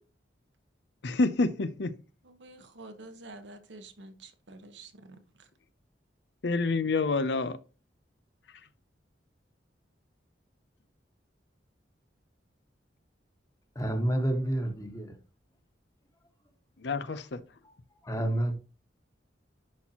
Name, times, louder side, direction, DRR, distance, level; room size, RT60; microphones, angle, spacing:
voice 1, 1.0-2.0 6.4-7.6 16.8-17.4, left 3 dB, 65° left, 0.6 m, -28 dB
voice 2, 2.2-5.5, right 2 dB, 80° right, 1.2 m, -49 dB
voice 3, 13.7-15.1 18.0-18.5, right 1 dB, 20° left, 1.4 m, -29 dB
11.0 x 4.3 x 2.9 m
head